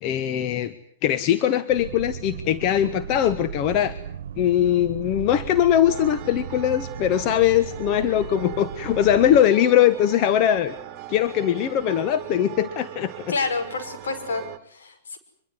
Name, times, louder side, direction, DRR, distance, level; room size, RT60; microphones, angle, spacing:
voice 1, 0.0-0.7 1.0-3.9 4.4-10.7 11.1-13.3, left 11 dB, 40° left, 11 dB, 1.3 m, -21 dB
sound 1, 1.7-9.4, right 8 dB, 70° right, 1.3 m, -36 dB
church bells (raw mid-side), 5.8-14.6, right 14 dB, 40° right, 1.7 m, -39 dB
voice 2, 13.3-15.2, left 4 dB, 70° left, 6 dB, 5.6 m, -29 dB
24.5 x 22.5 x 9.5 m, 0.64 s
hypercardioid pair, 110°, 0 cm